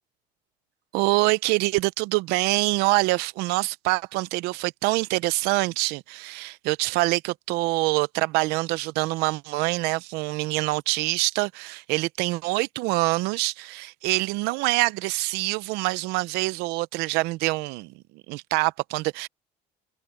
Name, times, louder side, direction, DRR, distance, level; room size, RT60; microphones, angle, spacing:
voice 1, 0.9-19.3, right 22 dB, 85° right, 0.7 m, -25 dB
cardioid pair, 120°, 16 cm